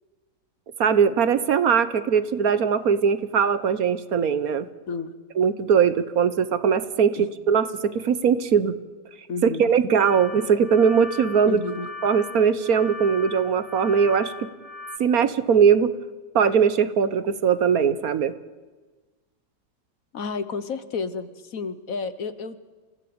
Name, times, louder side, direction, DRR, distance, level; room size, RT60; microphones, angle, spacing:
voice 1, 0.8-4.7 5.4-8.7 9.6-11.6 12.0-14.3 15.0-15.9 16.3-18.3, right 7 dB, 60° right, 14 dB, 1.4 m, -20 dB
voice 2, 9.3-9.7 11.5-11.9 20.1-22.6, left 4 dB, 55° left, 13 dB, 1.4 m, -31 dB
sound 1, 10.0-15.0, left 4 dB, 20° right, 2.5 m, -38 dB
27.5 x 16.0 x 8.7 m, 1.3 s
omnidirectional pair, 1.8 m